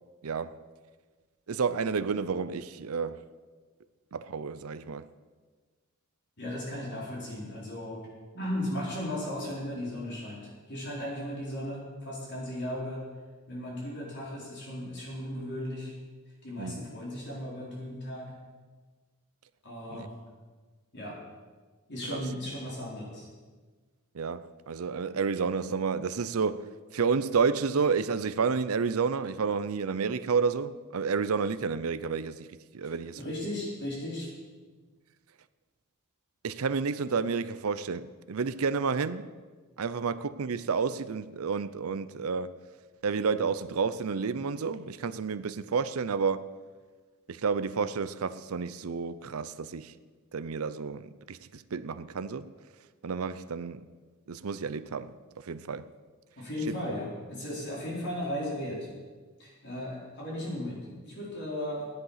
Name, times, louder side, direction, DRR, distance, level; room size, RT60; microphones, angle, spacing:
voice 1, 0.2-0.6 1.5-3.2 4.1-5.1 16.6-16.9 19.9-20.1 22.1-22.2 24.1-32.5 32.7-33.2 36.4-39.3 39.8-42.5 43.0-46.4 47.3-49.9 50.3-52.5 53.0-53.8 54.3-55.9 56.7-56.8, right 5 dB, 85° right, 0.6 m, -30 dB
voice 2, 6.4-8.0 8.3-13.0 13.5-15.9 16.4-18.3 19.6-20.1 20.9-21.2 21.9-23.3 33.1-34.3 56.4-58.9 59.4-61.9, left 1 dB, 55° left, 4.3 m, -36 dB
15.5 x 10.5 x 5.7 m
head